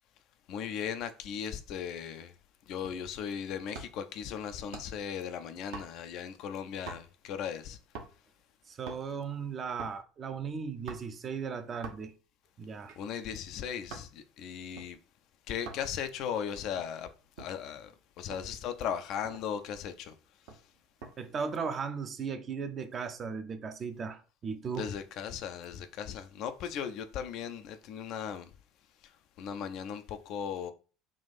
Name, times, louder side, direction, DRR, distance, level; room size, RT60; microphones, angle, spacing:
voice 1, 0.5-2.3 2.7-7.8 13.0-15.0 15.5-17.1 17.4-20.1 20.5-20.6 24.8-28.5 29.0-30.7, left 8 dB, 55° left, 0.4 m, -37 dB
sound 1, 2.8-3.2 3.7-4.1 4.7-5.1 5.7-6.2 6.9-7.3 7.9-8.3 8.7-9.1 9.8-10.0 10.9-11.2 11.8-12.2 12.8-14.1 14.8-14.9 15.7-15.9 16.6-17.6 18.3-18.5 18.9-19.0 19.2-19.7 20.5-21.2 21.5-21.8, right 4 dB, 65° right, 0.9 m, -46 dB
voice 2, 8.7-12.1 12.6-12.9 21.2-24.9, right 6 dB, 35° right, 0.6 m, -37 dB
3.6 x 2.4 x 4.1 m
figure-of-eight pair, 65°, 0 cm